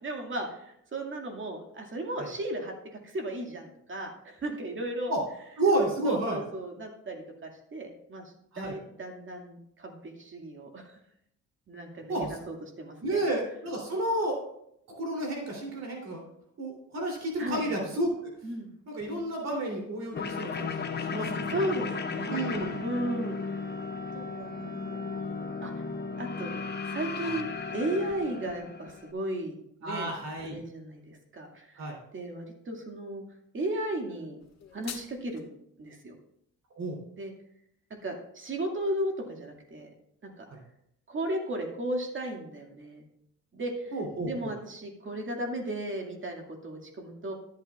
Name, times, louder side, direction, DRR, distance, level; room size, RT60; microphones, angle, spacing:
voice 1, 0.0-2.7 3.0-5.1 6.1-8.2 8.6-11.0 11.7-13.2 17.4-17.6 18.4-18.7 21.5-22.4 22.8-23.4 24.1-25.3 25.6-25.7 26.2-26.6 26.9-30.1 30.4-31.8 32.1-33.2 33.5-34.4 34.7-35.5 35.8-36.1 37.2-37.3 38.0-39.9 40.4-40.5 41.1-43.0 43.5-43.9 44.2-47.3, right 1 dB, 40° right, 2 dB, 2.1 m, -35 dB
voice 2, 5.6-6.4 8.5-8.8 12.1-12.4 13.0-14.4 14.9-16.2 16.6-18.3 18.9-21.7 22.3-22.8 27.2-27.4 29.8-30.6 31.8-32.0 36.8-37.0 40.5-40.6 43.9-44.5, right 1 dB, 60° right, 0 dB, 3.1 m, -31 dB
sound 1, 20.1-29.1, left 4 dB, 35° left, 0.8 m, -35 dB
sound 2, 34.4-35.4, left 7 dB, 60° left, 1.7 m, -44 dB
13.5 x 8.3 x 2.4 m, 0.75 s
cardioid pair, 90°, 30 cm